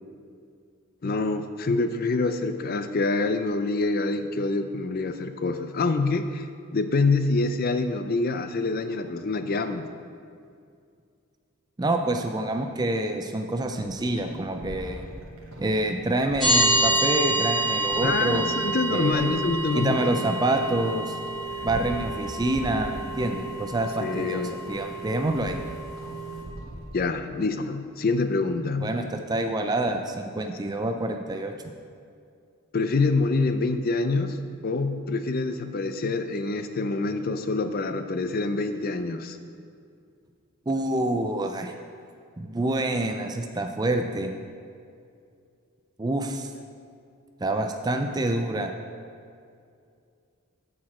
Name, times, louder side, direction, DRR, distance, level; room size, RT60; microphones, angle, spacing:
voice 1, 1.0-6.5 6.7-9.9 18.0-20.3 24.0-24.6 26.9-28.9 32.7-39.4, left 3 dB, 45° left, 9 dB, 0.4 m, -26 dB
voice 2, 11.8-15.0 15.6-18.5 18.9-19.4 19.7-21.2 21.6-25.6 28.8-31.6 40.7-41.7 42.4-44.3 46.0-46.5 47.4-48.7, right 1 dB, 20° right, 5 dB, 0.4 m, -27 dB
sound 1, 13.6-27.0, right 2 dB, 60° right, 1.1 m, -41 dB
sound 2, 16.4-26.4, right 1 dB, ahead, 2.3 m, -28 dB
13.0 x 4.9 x 4.3 m, 2.4 s
head